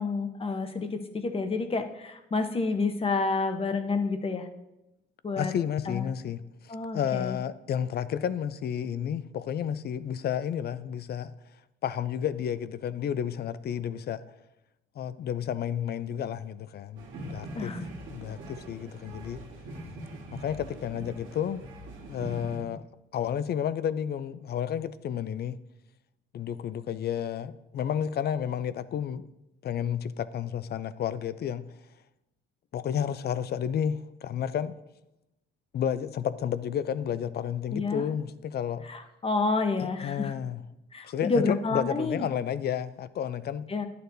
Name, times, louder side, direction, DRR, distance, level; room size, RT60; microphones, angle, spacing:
voice 1, 0.0-4.5 5.2-5.5 5.9-6.1 6.7-7.4 17.5-17.9 37.7-38.0 38.9-40.3 40.9-42.3 43.7-43.9, left 3 dB, 30° left, 0.8 m, -29 dB
voice 2, 5.4-6.4 6.9-11.3 11.8-14.2 15.0-17.8 18.1-19.4 20.3-21.6 22.1-22.8 23.1-25.6 26.3-29.2 29.6-31.6 32.7-34.7 35.7-38.8 39.8-40.6 41.0-43.7, left 9 dB, 55° left, 0.4 m, -31 dB
sound 1, 17.0-22.6, right 1 dB, 75° right, 1.5 m, -42 dB
11.0 x 6.7 x 2.7 m
cardioid pair, 90°, 20 cm